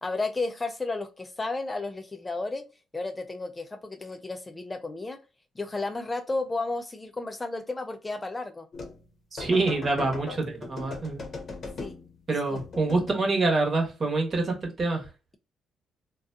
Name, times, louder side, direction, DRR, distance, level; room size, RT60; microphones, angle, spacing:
voice 1, 0.0-2.6 2.9-5.2 5.6-8.7 11.8-12.0 12.5-12.6, left 3 dB, 20° left, 7 dB, 0.3 m, -32 dB
sound 1, 8.7-9.0 9.4-12.1 12.5-13.3, left 3 dB, 45° left, 0.7 m, -39 dB
voice 2, 9.3-11.2 12.3-15.0, right 3 dB, 40° right, 1 dB, 1.0 m, -26 dB
2.4 x 2.2 x 2.5 m, 0.30 s
cardioid pair, 90°, 0 cm